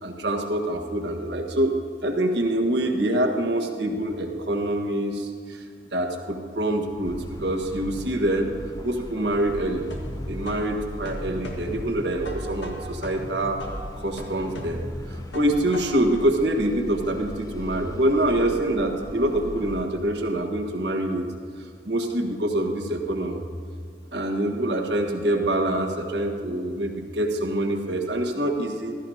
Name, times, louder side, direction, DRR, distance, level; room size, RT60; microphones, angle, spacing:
voice 1, 0.0-1.8 2.0-5.6 5.9-8.5 8.8-9.8 10.2-13.6 14.0-21.2 21.8-23.4 24.1-29.0, right 1 dB, 75° right, 1 dB, 1.4 m, -25 dB
sound 1, 7.0-19.8, left 1 dB, 20° left, 0.6 m, -39 dB
sound 2, 9.3-16.2, equal, 85° left, 1.6 m, -39 dB
15.0 x 14.0 x 2.8 m, 2.2 s
head